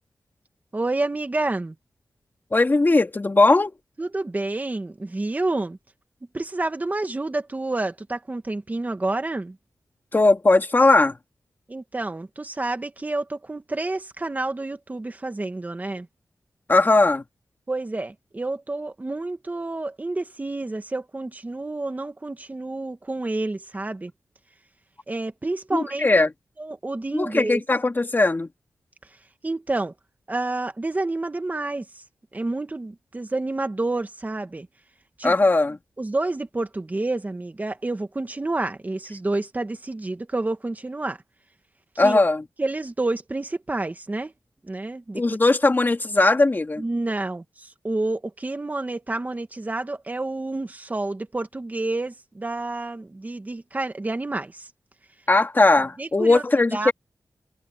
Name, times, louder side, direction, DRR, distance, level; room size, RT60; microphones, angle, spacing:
voice 1, 0.7-1.8 4.0-5.8 6.3-9.6 11.7-16.1 17.7-24.1 25.1-26.1 26.6-27.6 29.4-29.9 30.3-32.0 32.3-34.7 35.2-35.3 36.0-41.2 42.0-42.2 42.6-44.3 44.6-45.2 46.8-54.7 56.0-56.4 56.7-56.9, right 2 dB, 25° right, 2.0 m, -29 dB
voice 2, 2.5-3.7 10.1-11.1 16.7-17.2 25.7-26.3 27.1-28.5 35.2-35.8 42.0-42.4 45.1-46.8 55.3-56.9, left 2 dB, 30° left, 2.9 m, -19 dB
wide cardioid pair, 110°, 7 cm